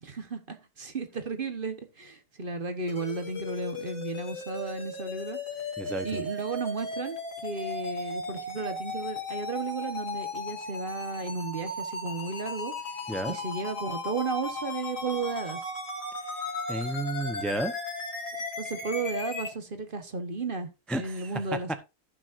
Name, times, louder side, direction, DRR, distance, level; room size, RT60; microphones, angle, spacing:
voice 1, 0.0-5.4 6.0-12.7 13.3-15.6 18.6-21.7, right 4 dB, 35° right, 1.2 m, -34 dB
sound 1, 2.9-19.5, left 2 dB, 80° left, 3.4 m, -36 dB
voice 2, 5.8-6.2 13.1-13.4 16.7-17.7 20.9-21.3, right 1 dB, ahead, 0.5 m, -32 dB
15.0 x 6.2 x 2.6 m
omnidirectional pair, 1.7 m